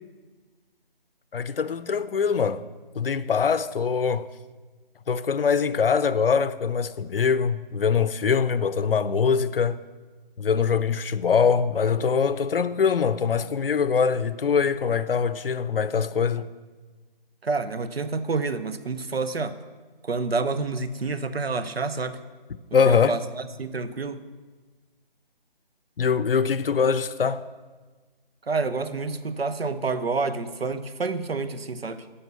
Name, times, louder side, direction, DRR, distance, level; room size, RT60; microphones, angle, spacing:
voice 1, 1.3-2.6 2.9-4.3 5.1-9.8 10.4-16.5 22.7-23.2 26.0-27.4, left 6 dB, 70° left, 0.6 m, -23 dB
voice 2, 17.4-19.5 20.0-22.2 22.9-24.2 28.5-32.0, right 4 dB, 85° right, 0.9 m, -28 dB
14.5 x 5.7 x 6.8 m
figure-of-eight pair, 165°, 29 cm